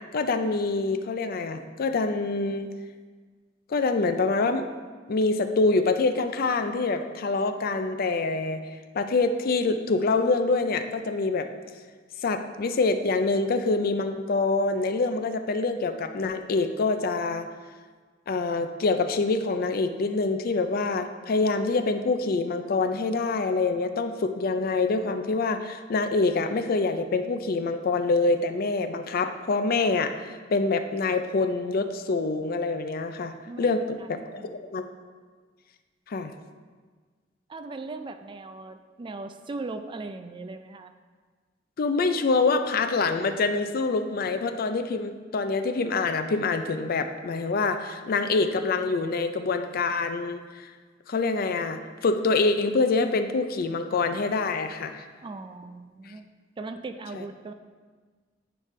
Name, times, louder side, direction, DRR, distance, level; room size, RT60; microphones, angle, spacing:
voice 1, 0.1-2.7 3.7-4.7 5.1-8.7 8.9-11.5 12.2-17.5 18.3-30.1 30.5-34.9 36.1-36.3 41.8-50.7 51.1-55.0 56.1-56.2 57.1-57.2, left 3 dB, 55° left, 9 dB, 0.4 m, -26 dB
voice 2, 33.5-34.5 37.5-41.0 55.2-56.3 56.6-57.5, right 3 dB, 25° right, 8 dB, 0.3 m, -39 dB
8.8 x 5.0 x 3.2 m, 1.5 s
head